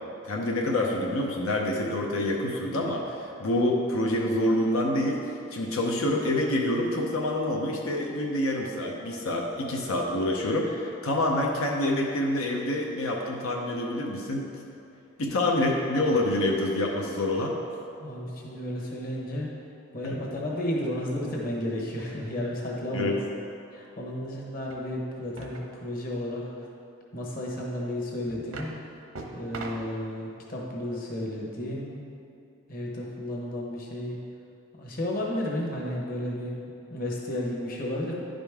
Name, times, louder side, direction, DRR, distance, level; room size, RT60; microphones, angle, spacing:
voice 1, 0.2-14.5 15.2-17.5 20.0-20.1 22.9-23.2, left 1 dB, 90° left, -1 dB, 0.8 m, -27 dB
voice 2, 18.0-19.5 19.9-23.2 23.7-26.4 27.1-28.7 29.3-32.0 32.7-34.2 34.8-38.2, left 1 dB, 45° left, -3 dB, 1.2 m, -32 dB
sound 1, 24.7-24.8 25.4-25.7 27.6-27.7 28.3-28.7 29.1-29.9, right 3 dB, 85° right, 0.8 m, -40 dB
10.5 x 5.1 x 3.5 m, 2.5 s
head